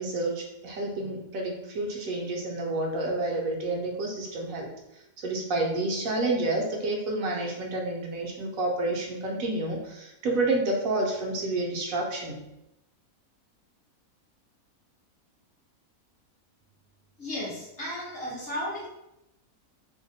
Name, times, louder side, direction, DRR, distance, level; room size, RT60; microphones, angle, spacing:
voice 1, 0.0-4.7 5.2-12.4, right 2 dB, 70° right, 0 dB, 1.0 m, -29 dB
voice 2, 17.2-18.9, left 1 dB, 45° left, -5 dB, 1.0 m, -34 dB
2.8 x 2.2 x 3.9 m, 0.89 s
omnidirectional pair, 1.5 m